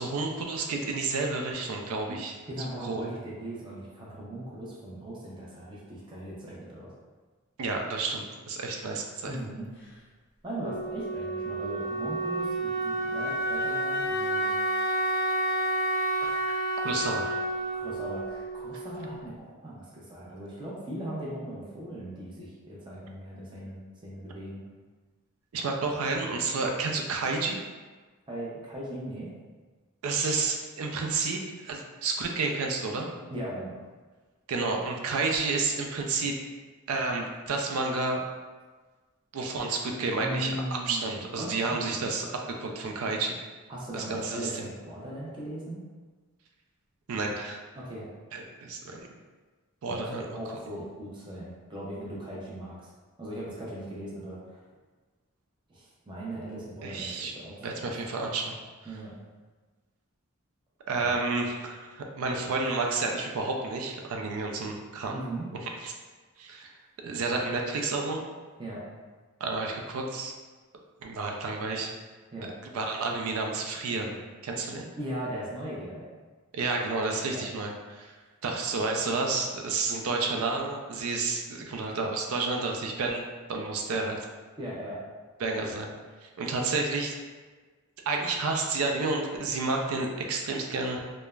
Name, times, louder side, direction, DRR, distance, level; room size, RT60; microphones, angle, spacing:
voice 1, 0.0-2.3 2.8-3.0 7.6-9.4 16.2-16.5 16.8-17.4 25.5-27.6 30.0-33.1 34.5-36.4 36.9-38.2 39.3-43.4 43.9-44.6 47.1-47.6 48.3-49.1 49.8-50.2 56.8-57.3 57.6-58.6 60.9-65.2 65.8-65.9 66.4-66.7 67.0-68.2 69.4-70.3 71.0-71.9 72.4-74.2 74.4-74.9 76.5-78.2 78.4-83.2 83.5-84.2 85.4-85.9 86.2-87.1 88.1-91.0, right 3 dB, 75° right, 2 dB, 0.4 m, -30 dB
voice 2, 2.5-6.9 9.3-9.7 10.4-14.5 17.7-24.6 28.3-29.3 33.3-33.8 40.2-42.1 43.7-45.8 47.8-48.1 49.9-52.9 53.2-54.6 55.7-57.6 58.8-59.1 61.0-61.2 65.1-65.5 68.6-68.8 72.3-72.5 75.0-76.0 77.3-77.4 84.6-85.0, right 1 dB, 20° right, -6 dB, 0.5 m, -38 dB
Wind instrument woodwind instrument, 10.6-19.3, right 1 dB, 50° left, 0.4 m, -30 dB
3.1 x 2.0 x 2.3 m, 1.4 s
head